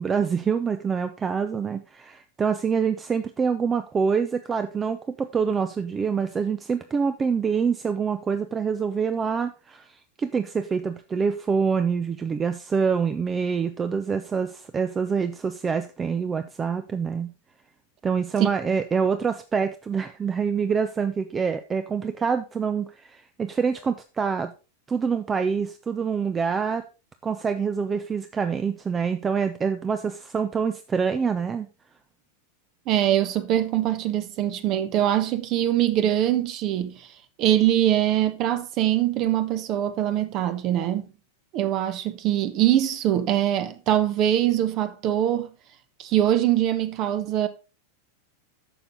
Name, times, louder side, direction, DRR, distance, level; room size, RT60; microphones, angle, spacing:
voice 1, 0.0-17.3 18.0-24.5 24.9-26.8 27.2-31.7, right 6 dB, 20° right, 0.6 m, -26 dB
voice 2, 32.9-37.0 37.4-41.1 41.5-45.5 46.0-47.5, right 12 dB, 35° right, 1.1 m, -23 dB
11.0 x 6.9 x 3.7 m
figure-of-eight pair, 90°, 0 cm